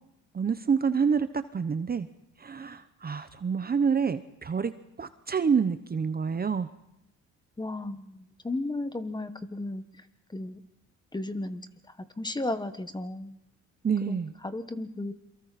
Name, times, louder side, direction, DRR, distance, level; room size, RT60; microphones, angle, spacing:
voice 1, 0.3-2.1 2.4-4.7 5.0-6.7 13.8-14.3, right 6 dB, 30° right, 11 dB, 0.9 m, -27 dB
voice 2, 7.6-9.8 10.3-10.6 11.1-13.4 14.0-15.1, left 2 dB, 15° left, 10 dB, 1.4 m, -34 dB
28.5 x 23.5 x 4.2 m, 0.84 s
cardioid pair, 90°, 30 cm